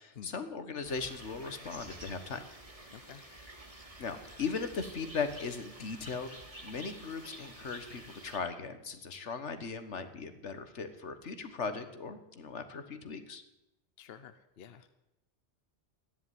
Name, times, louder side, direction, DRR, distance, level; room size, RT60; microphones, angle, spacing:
voice 1, 0.0-2.4 4.0-13.4, left 5 dB, 85° left, 9 dB, 1.7 m, -38 dB
sound 1, 0.8-8.4, right 1 dB, 30° right, 2.4 m, -50 dB
voice 2, 2.9-3.2 14.0-14.9, left 8 dB, 60° left, 10 dB, 1.0 m, -50 dB
13.5 x 10.5 x 9.4 m, 0.93 s
omnidirectional pair, 1.2 m